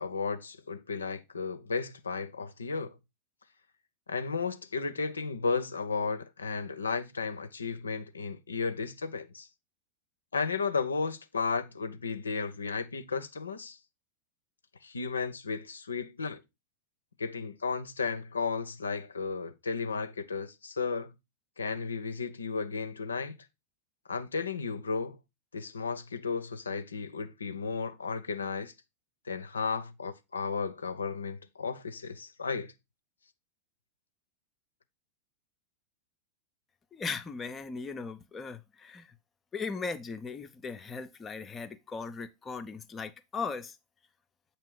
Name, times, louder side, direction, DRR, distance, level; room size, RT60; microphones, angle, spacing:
voice 1, 0.0-3.0 4.1-9.5 10.3-13.8 14.8-16.4 17.2-21.1 21.6-23.4 24.1-25.2 25.5-28.7 29.3-32.7, left 4 dB, 75° left, 0.5 m, -34 dB
voice 2, 36.9-39.1 39.5-43.8, left 4 dB, 20° left, 0.5 m, -38 dB
7.4 x 2.9 x 4.6 m
figure-of-eight pair, 90°, 0 cm